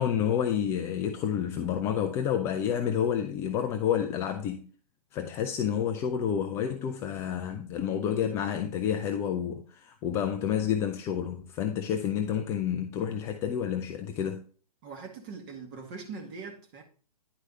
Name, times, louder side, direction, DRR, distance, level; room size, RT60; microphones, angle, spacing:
voice 1, 0.0-4.7 5.1-14.4, left 9 dB, 15° left, 0.3 m, -29 dB
voice 2, 14.8-16.8, right 4 dB, 35° right, 2.0 m, -42 dB
10.5 x 4.7 x 4.2 m
figure-of-eight pair, 130°, 20 cm